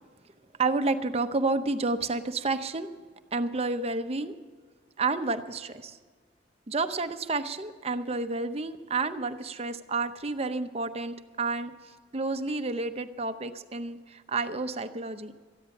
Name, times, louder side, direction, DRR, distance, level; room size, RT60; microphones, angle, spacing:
voice 1, 0.6-2.9 3.3-4.3 5.0-6.0 6.7-11.7 12.1-15.3, right 3 dB, 35° right, 9 dB, 0.7 m, -30 dB
13.5 x 10.0 x 7.1 m, 1.5 s
head